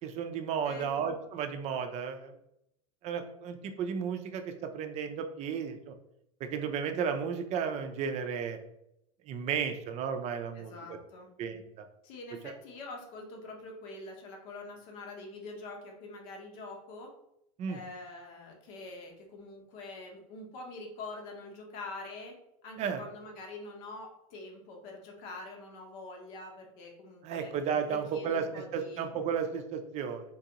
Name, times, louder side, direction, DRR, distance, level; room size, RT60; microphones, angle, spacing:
voice 1, 0.0-2.3 3.0-5.9 6.5-8.6 9.3-11.0 11.4-11.9 12.4-12.5 17.6-17.8 22.8-23.0 27.2-28.4 28.7-30.2, right 7 dB, 35° right, 6 dB, 0.5 m, -33 dB
voice 2, 0.6-1.0 10.5-11.3 12.0-17.1 17.7-22.3 22.6-27.5 27.9-29.1, left 2 dB, 60° left, 2 dB, 0.9 m, -45 dB
3.8 x 2.5 x 2.8 m, 0.79 s
hypercardioid pair, 110°, 19 cm